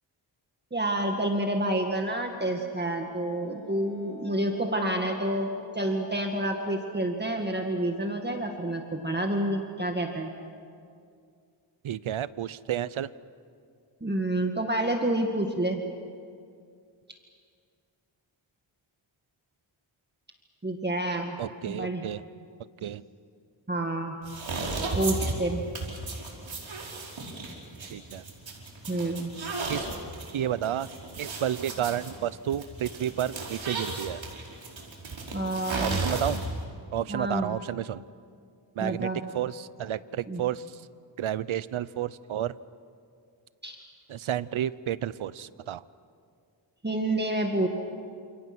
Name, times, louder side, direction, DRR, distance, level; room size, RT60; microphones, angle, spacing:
voice 1, 0.7-10.3 14.0-15.8 20.6-21.4 21.7-22.0 23.7-24.2 25.0-25.6 28.9-29.3 35.3-36.0 37.1-37.5 38.8-39.2 40.3-40.4 43.6-43.8 46.8-47.7, right 1 dB, 20° right, 3 dB, 1.9 m, -28 dB
Brass instrument, 2.8-7.0, right 1 dB, 15° left, 7.1 m, -48 dB
voice 2, 11.8-13.1 21.4-22.2 22.8-23.0 27.9-28.2 29.7-29.9 30.3-30.9 31.2-34.2 35.8-36.5 36.9-38.0 38.7-40.9 41.2-42.6 44.1-45.8, right 10 dB, 85° right, 17 dB, 0.8 m, -31 dB
sound 1, 24.2-36.6, right 3 dB, 70° right, 5.2 m, -35 dB
30.0 x 27.5 x 6.2 m, 2.3 s
wide cardioid pair, 100°, 47 cm